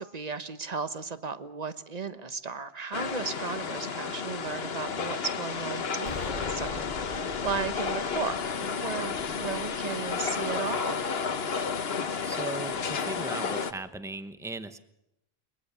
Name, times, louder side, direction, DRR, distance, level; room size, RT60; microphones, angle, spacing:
voice 1, 0.0-11.0, right 5 dB, 40° right, 11 dB, 1.3 m, -35 dB
sound 1, 2.9-13.7, left 5 dB, 80° left, 1.3 m, -32 dB
Explosion, 6.0-10.9, left 4 dB, 50° left, 1.2 m, -41 dB
voice 2, 12.2-14.8, right 2 dB, 5° right, 11 dB, 1.0 m, -38 dB
22.0 x 22.0 x 6.9 m, 0.84 s
omnidirectional pair, 1.0 m